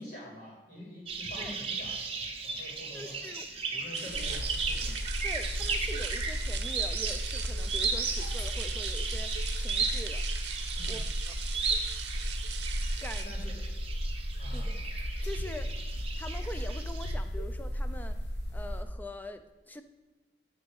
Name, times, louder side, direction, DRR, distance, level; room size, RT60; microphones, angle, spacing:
voice 1, 0.0-3.2 3.7-4.9 10.8-11.0 13.2-13.6 14.4-14.7, left 1 dB, 55° left, -5 dB, 2.8 m, -46 dB
sound 1, 1.1-17.1, right 4 dB, 35° right, 1.0 m, -36 dB
voice 2, 2.9-3.5 4.2-4.3 5.2-10.2 10.9-11.4 13.0-13.3 14.5-14.8 15.2-15.7 16.2-18.2 18.5-19.8, left 1 dB, 10° left, 8 dB, 0.5 m, -43 dB
sound 2, 3.9-13.2, right 9 dB, 65° right, 0.7 m, -41 dB
sound 3, 4.1-18.8, equal, 75° left, 1.1 m, -35 dB
11.5 x 4.0 x 6.4 m, 1.2 s
head